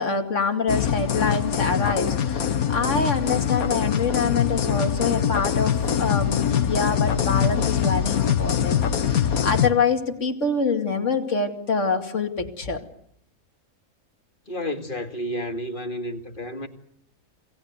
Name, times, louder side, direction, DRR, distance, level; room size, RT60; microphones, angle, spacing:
voice 1, 0.0-12.8, left 4 dB, 55° left, 2.7 m, -25 dB
sound 1, 0.7-9.7, left 8 dB, 90° left, 1.7 m, -23 dB
voice 2, 14.5-16.7, equal, 35° left, 2.3 m, -31 dB
28.5 x 18.0 x 8.1 m
omnidirectional pair, 1.5 m